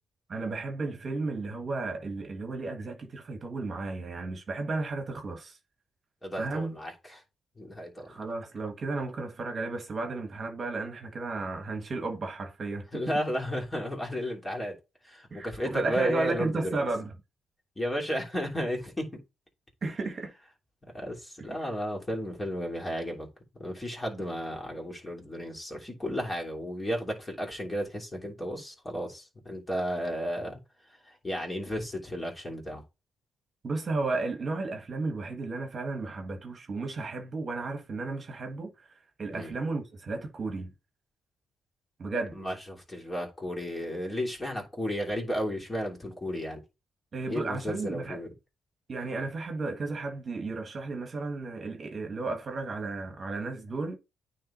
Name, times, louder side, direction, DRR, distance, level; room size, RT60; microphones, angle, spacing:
voice 1, 0.3-5.6 6.4-6.7 8.1-13.0 15.3-17.1 19.8-20.3 21.4-21.7 33.6-38.7 39.2-40.7 42.0-42.4 47.1-48.2 48.9-54.0, right 3 dB, 40° right, 1.5 m, -33 dB
voice 2, 6.2-7.2 7.6-8.1 12.9-14.7 15.0-16.9 17.8-19.0 20.9-23.3 23.6-30.6 30.9-32.8 39.3-39.5 42.3-46.6 47.3-48.3, equal, 15° left, 2.9 m, -33 dB
9.3 x 3.2 x 4.3 m
cardioid pair, 90°, 0 cm